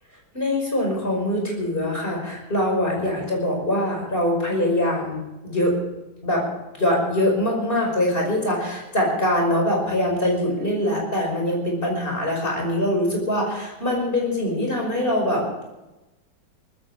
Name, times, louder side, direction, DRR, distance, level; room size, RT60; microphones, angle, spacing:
voice 1, 0.3-5.8 6.2-6.4 6.7-15.5, left 1 dB, 30° left, 0 dB, 5.8 m, -23 dB
19.0 x 15.0 x 5.0 m, 1.0 s
omnidirectional pair, 1.8 m